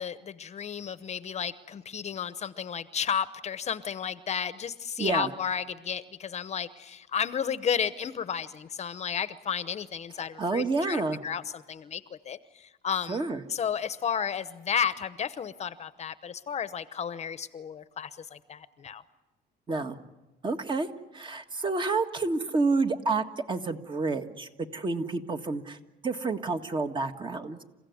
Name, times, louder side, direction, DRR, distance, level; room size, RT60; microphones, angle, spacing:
voice 1, 0.0-12.4 12.8-13.2 13.5-19.0, left 7 dB, 40° left, 14 dB, 0.9 m, -32 dB
voice 2, 5.0-5.3 10.2-11.2 13.1-13.4 19.7-20.0 20.4-20.9 21.1-25.8 26.0-27.6, right 3 dB, 30° right, 6 dB, 1.7 m, -29 dB
29.0 x 16.0 x 9.5 m, 1.1 s
cardioid pair, 110°, 17 cm